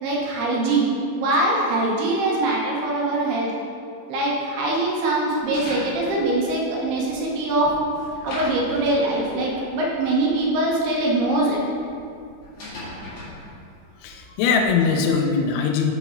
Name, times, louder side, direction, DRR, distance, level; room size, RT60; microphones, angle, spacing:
voice 1, 0.0-3.5 4.1-7.9 8.2-11.6, right 2 dB, 80° right, -3 dB, 2.3 m, -23 dB
sound 1, 5.4-15.1, left 1 dB, 45° left, 2.0 m, -40 dB
voice 2, 14.0-15.9, left 5 dB, 90° left, 3 dB, 3.4 m, -21 dB
6.9 x 6.8 x 4.4 m, 2.5 s
omnidirectional pair, 5.9 m